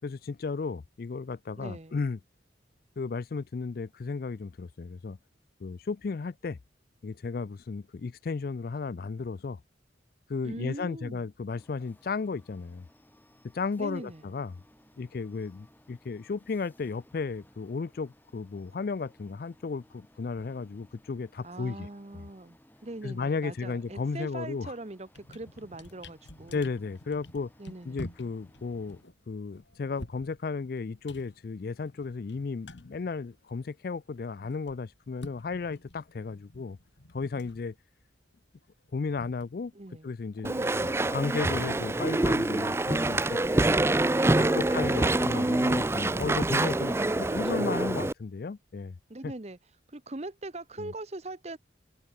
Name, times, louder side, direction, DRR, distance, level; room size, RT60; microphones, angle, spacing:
voice 1, 0.0-2.2 3.0-5.2 5.6-6.6 7.0-9.6 10.3-12.9 13.5-14.5 15.0-21.9 23.0-24.7 26.5-27.5 27.8-29.0 29.3-36.8 37.1-37.7 38.9-39.7 40.0-43.8 44.4-49.0 49.2-49.3 50.8-50.9, left 4 dB, 50° left, 0.4 m, -34 dB
voice 2, 1.6-2.0 10.4-11.3 13.8-14.2 21.4-22.6 22.8-26.7 27.6-28.1 39.7-40.1 40.4-41.2 41.9-42.2 44.4-45.4 47.2-48.0 49.1-49.6 49.9-51.6, right 2 dB, 35° right, 0.9 m, -41 dB
sound 1, 11.5-29.0, equal, 10° left, 5.4 m, -61 dB
sound 2, 24.5-24.7 25.0-33.9 34.2-40.1, left 1 dB, 75° left, 4.0 m, -49 dB
Walk footsteps / Chatter / Squeak, 40.4-48.1, right 2 dB, 15° right, 0.4 m, -26 dB
head